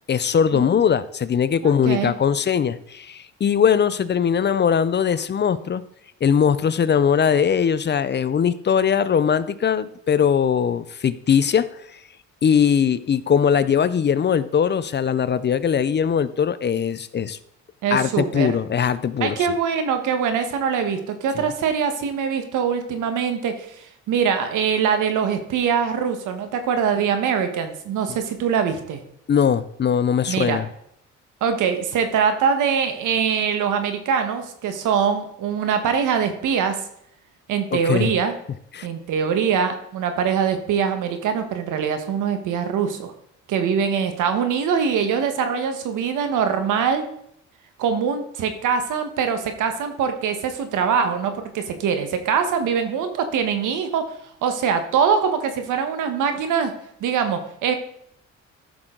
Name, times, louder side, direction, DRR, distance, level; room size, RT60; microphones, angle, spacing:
voice 1, 0.1-5.9 6.2-11.7 12.4-17.4 17.9-19.4 21.4-21.5 29.3-30.7 37.7-38.1 38.7-38.9, left 7 dB, 35° left, 16 dB, 0.5 m, -20 dB
voice 2, 1.6-2.1 17.8-18.5 19.2-29.0 30.3-30.6 31.4-36.8 37.5-38.3 38.8-43.1 43.5-47.0 47.8-54.1 54.4-56.7 57.0-57.7, right 7 dB, 85° right, 7 dB, 1.4 m, -23 dB
14.0 x 6.3 x 3.8 m, 0.72 s
cardioid pair, 90°, 30 cm